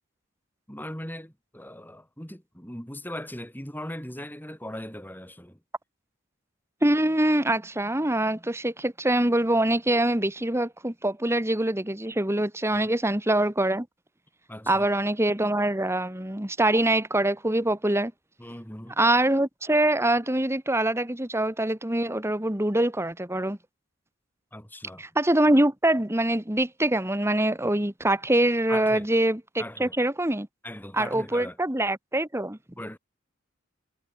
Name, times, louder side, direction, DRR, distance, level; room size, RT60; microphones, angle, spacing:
voice 1, 0.7-5.6 12.7-12.8 14.5-14.9 18.4-19.0 24.5-25.0 28.7-29.1 29.6-29.9 30.6-31.6 32.8-33.0, left 1 dB, 10° left, 5.1 m, -39 dB
voice 2, 6.8-13.9 14.7-18.1 19.0-23.6 25.0-30.5 30.9-32.6, right 1 dB, 10° right, 1.7 m, -24 dB
head